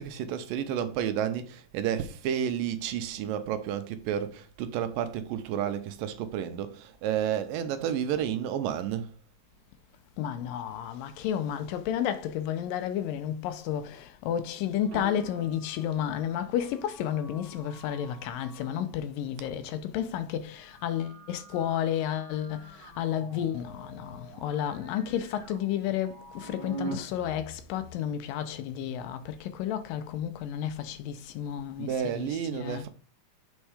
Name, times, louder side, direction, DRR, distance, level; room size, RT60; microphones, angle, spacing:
voice 1, 0.0-9.1 31.8-32.9, right 9 dB, 85° right, 2.2 m, -31 dB
voice 2, 10.2-32.8, left 10 dB, 80° left, 2.2 m, -32 dB
sound 1, 14.8-18.9 20.5-29.0, right 3 dB, 50° right, 1.3 m, -46 dB
7.1 x 4.5 x 4.9 m
omnidirectional pair, 4.2 m